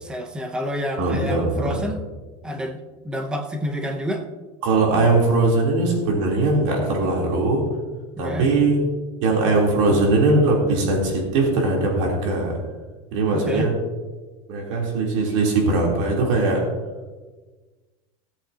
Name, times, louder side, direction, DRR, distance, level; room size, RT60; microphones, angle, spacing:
voice 1, 0.0-2.0 2.4-4.3 8.2-8.5 13.3-13.7, equal, 5° right, 5 dB, 0.7 m, -29 dB
voice 2, 1.0-1.8 4.6-7.6 8.2-8.8 9.2-12.6 13.1-13.7 14.5-16.6, right 2 dB, 75° right, -2 dB, 3.4 m, -20 dB
18.0 x 8.4 x 2.8 m, 1.3 s
cardioid pair, 165°, 16 cm